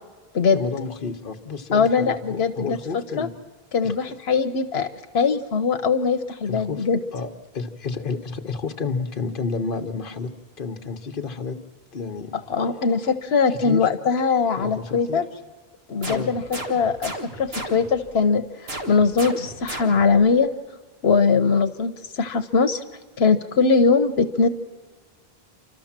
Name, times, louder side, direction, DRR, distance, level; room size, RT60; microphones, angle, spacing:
voice 1, 0.5-3.3 3.8-4.0 6.5-6.9 7.1-10.3 10.6-11.6 11.9-12.3 13.5-13.9 14.6-15.2 16.0-16.3, left 4 dB, 60° left, 6 dB, 1.2 m, -30 dB
voice 2, 1.7-3.3 3.7-4.9 5.1-7.0 12.3-15.3 15.9-20.5 21.0-22.8 23.2-24.5, left 5 dB, 85° left, 8 dB, 1.1 m, -21 dB
sound 1, 16.0-18.1 18.7-20.2, right 1 dB, 80° right, 2.0 m, -35 dB
29.0 x 12.5 x 7.3 m, 1.4 s
omnidirectional pair, 1.0 m